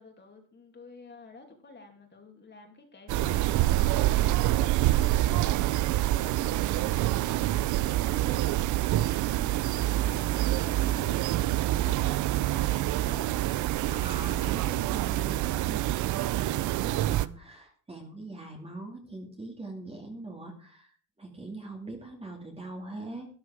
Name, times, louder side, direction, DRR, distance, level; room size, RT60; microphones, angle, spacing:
voice 1, 0.0-13.3, left 4 dB, 20° left, 3 dB, 2.7 m, -50 dB
sound 1, 3.1-17.3, right 15 dB, 40° right, 0.5 m, -26 dB
voice 2, 13.9-16.5 16.8-20.9 21.2-23.3, right 2 dB, 10° right, 2 dB, 2.3 m, -42 dB
13.0 x 10.0 x 4.7 m, 0.42 s
cardioid pair, 120°, 48 cm